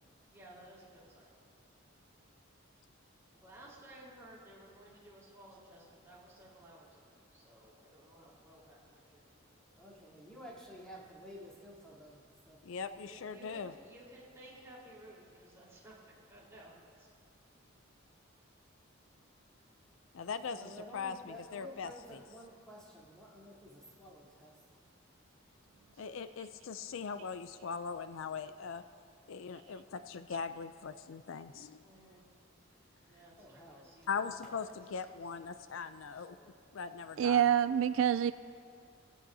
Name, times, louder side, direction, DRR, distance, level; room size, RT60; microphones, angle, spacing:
voice 1, 0.3-1.4 3.3-9.2 12.9-17.1 23.3-23.4 31.8-32.2 33.0-35.0 35.3-35.6 36.2-36.5, right 1 dB, 15° right, -7 dB, 4.0 m, -57 dB
voice 2, 9.7-12.6 20.5-24.5 33.4-33.9, equal, 5° left, -7 dB, 3.3 m, -52 dB
voice 3, 12.6-13.7 20.1-20.6 20.9-21.9 26.0-28.8 29.3-31.8 34.1-36.4 36.7-37.4, left 5 dB, 75° left, 11 dB, 0.4 m, -40 dB
voice 4, 37.2-38.3, right 9 dB, 70° right, 13 dB, 0.3 m, -26 dB
19.5 x 16.0 x 2.8 m, 2.2 s
head